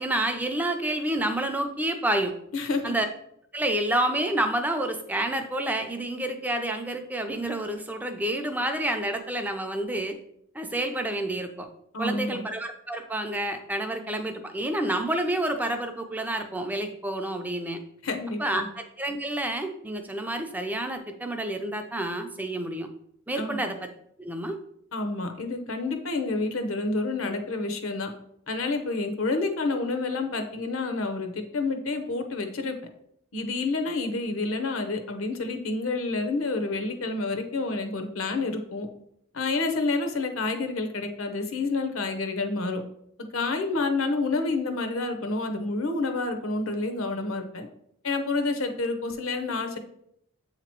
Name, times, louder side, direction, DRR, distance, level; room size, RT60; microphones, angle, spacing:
voice 1, 0.0-2.3 2.8-3.1 3.5-10.2 10.5-11.7 12.0-17.8 18.4-22.9 23.3-23.8 24.2-24.6, right 1 dB, 10° right, 5 dB, 0.4 m, -29 dB
voice 2, 2.5-2.9 11.9-12.5 18.0-18.7 23.4-23.6 24.9-28.1 28.5-32.8 33.3-38.9 39.3-42.8 43.3-47.7 48.0-49.8, left 3 dB, 70° left, 6 dB, 0.8 m, -29 dB
7.7 x 2.9 x 4.4 m, 0.74 s
head